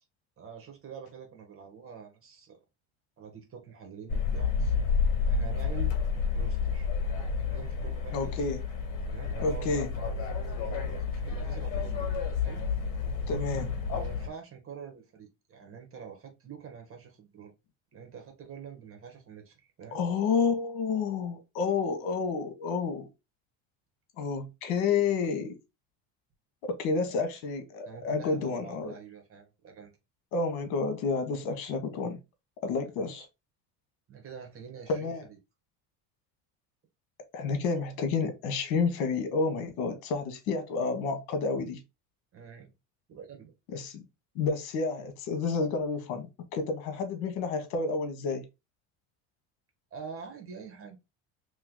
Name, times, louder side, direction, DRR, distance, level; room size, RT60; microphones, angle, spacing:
voice 1, 0.4-2.6 3.2-4.7 5.3-5.9 6.3-6.9 7.4-8.4 9.1-12.1 12.4-12.6 13.9-17.5 17.9-20.0 27.0-27.1 27.8-29.9 34.1-35.4 42.3-42.7 43.1-43.5 49.9-51.0, right 6 dB, 35° right, 1.5 m, -46 dB
sound 1, 4.1-14.3, left 5 dB, 60° left, 1.8 m, -30 dB
voice 2, 8.1-8.6 9.4-9.9 13.3-13.7 19.9-23.1 24.2-25.6 26.6-28.9 30.3-32.2 32.6-33.3 34.9-35.2 37.3-41.8 43.7-44.0 44.3-48.5, left 4 dB, 75° left, 1.3 m, -30 dB
3.3 x 3.0 x 3.9 m
cardioid pair, 115°, 37 cm